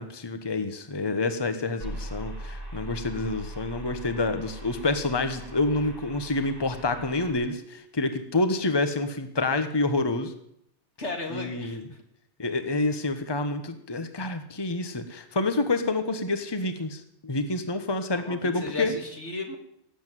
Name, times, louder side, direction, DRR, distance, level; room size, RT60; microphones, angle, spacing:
voice 1, 0.0-10.3 11.3-11.8 12.4-19.0, left 2 dB, 25° left, 9 dB, 1.2 m, -28 dB
sound 1, 1.8-7.3, right 1 dB, 50° left, 5.5 m, -40 dB
voice 2, 11.0-12.0 18.1-19.6, left 2 dB, 85° left, 3 dB, 3.0 m, -35 dB
18.5 x 8.0 x 9.2 m, 0.74 s
omnidirectional pair, 1.2 m